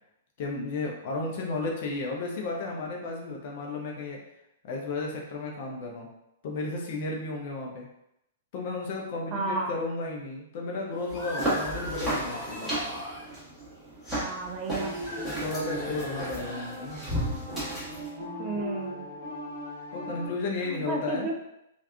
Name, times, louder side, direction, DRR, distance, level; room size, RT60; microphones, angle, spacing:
voice 1, 0.4-4.2 4.6-6.1 6.4-7.9 8.5-12.8 15.2-17.0 19.9-21.3, left 3 dB, 45° left, 0 dB, 0.6 m, -33 dB
voice 2, 9.3-9.7 14.1-15.0 18.4-19.1 20.6-21.3, right 3 dB, 30° right, 2 dB, 0.4 m, -33 dB
sound 1, 10.9-13.3 14.7-17.2, equal, 25° left, 1.0 m, -39 dB
sound 2, 11.1-18.1, right 1 dB, 5° right, 1.2 m, -34 dB
sound 3, 14.7-20.3, equal, 45° right, 0.8 m, -39 dB
3.3 x 2.4 x 2.2 m, 0.82 s
figure-of-eight pair, 110°, 0 cm